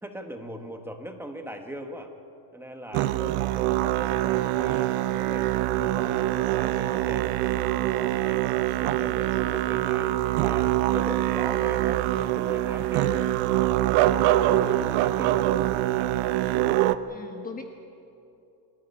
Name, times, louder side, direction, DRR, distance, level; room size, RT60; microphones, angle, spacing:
voice 1, 0.0-2.1 2.5-6.3 6.6-7.7 8.1-13.3 14.2-15.5, equal, 5° right, 4 dB, 1.5 m, -40 dB
Musical instrument, 2.9-17.0, right 14 dB, 75° right, 0.9 m, -24 dB
voice 2, 16.9-17.6, left 5 dB, 20° left, 4 dB, 1.2 m, -40 dB
23.5 x 14.0 x 9.7 m, 2.7 s
cardioid pair, 150°, 48 cm